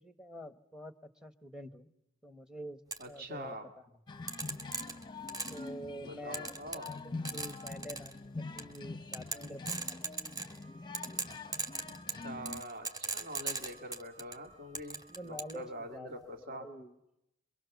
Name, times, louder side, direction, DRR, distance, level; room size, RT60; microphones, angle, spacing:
voice 1, 0.0-1.9 2.2-3.6 3.8-4.0 5.5-10.0 15.1-16.9, equal, 5° right, 10 dB, 1.2 m, -47 dB
sound 1, 2.9-3.0 4.3-5.7 6.3-7.0 7.3-8.1 8.6-8.8 9.1-10.6 10.9-14.4 14.8-15.6, right 3 dB, 20° right, 2.9 m, -38 dB
voice 2, 3.0-3.7 6.0-7.0 11.9-16.7, equal, 45° right, 5 dB, 2.2 m, -45 dB
sound 2, 4.1-12.6, left 3 dB, 20° left, 0.8 m, -44 dB
Wind instrument woodwind instrument, 10.6-15.7, right 2 dB, 90° right, 7.8 m, -61 dB
26.0 x 24.5 x 7.1 m, 0.86 s
head